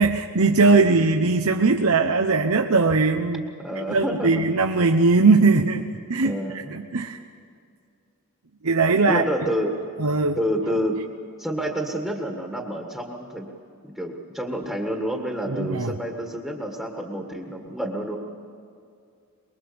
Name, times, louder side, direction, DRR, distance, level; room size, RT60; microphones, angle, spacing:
voice 1, 0.0-3.4 3.8-7.2 8.6-9.2 10.0-10.4 15.6-15.9, right 3 dB, 75° right, 4 dB, 0.9 m, -20 dB
voice 2, 3.6-4.4 6.2-6.8 9.1-9.7 10.4-11.0 11.4-13.5 13.8-18.2, equal, ahead, 0 dB, 1.7 m, -28 dB
23.5 x 22.5 x 7.0 m, 2.4 s
head